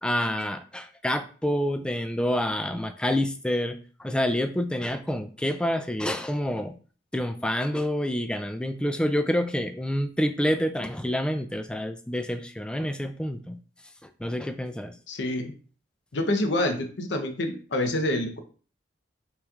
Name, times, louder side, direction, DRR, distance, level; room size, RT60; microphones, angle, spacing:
voice 1, 0.0-6.7 7.1-13.6 14.2-14.9, equal, 5° left, 8 dB, 0.3 m, -28 dB
voice 2, 15.1-15.5 16.1-18.4, left 1 dB, 65° left, 5 dB, 0.8 m, -27 dB
6.1 x 3.1 x 2.4 m, 0.39 s
head